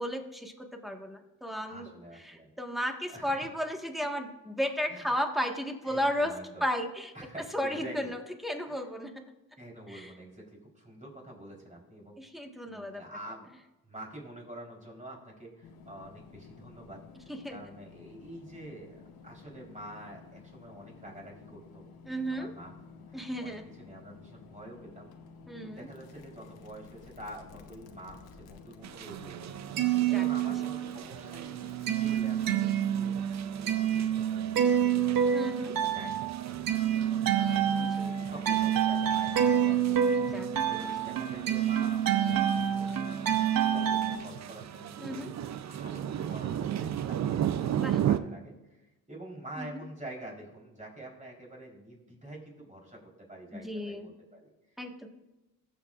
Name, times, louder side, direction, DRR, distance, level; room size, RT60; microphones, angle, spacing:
voice 1, 0.0-1.9 2.2-6.3 6.6-7.1 7.5-9.2 9.9-10.1 12.2-13.0 17.3-17.6 22.1-22.5 23.1-23.6 25.5-25.9 30.0-30.2 35.3-35.7 37.8-38.2 40.3-40.5 45.0-45.3 47.8-48.0 49.6-49.8 53.5-54.1 54.8-55.1, equal, ahead, 3 dB, 1.5 m, -34 dB
voice 2, 1.7-2.5 3.1-3.4 4.9-5.2 5.8-6.6 7.1-8.1 8.6-8.9 9.6-12.2 12.7-13.6 13.8-21.8 22.3-22.7 23.1-25.1 25.6-29.8 30.1-31.6 32.0-33.2 33.9-35.3 35.8-40.0 40.6-42.7 43.7-53.0 53.3-54.8, right 1 dB, 20° right, -1 dB, 3.8 m, -47 dB
sound 1, 15.6-32.5, left 5 dB, 80° left, 1.1 m, -52 dB
sound 2, 28.8-48.2, right 10 dB, 50° right, 0.5 m, -37 dB
sound 3, 29.5-31.0 31.3-44.2, right 9 dB, 65° right, 0.9 m, -28 dB
19.0 x 7.4 x 2.5 m, 1.0 s
cardioid pair, 85°, 36 cm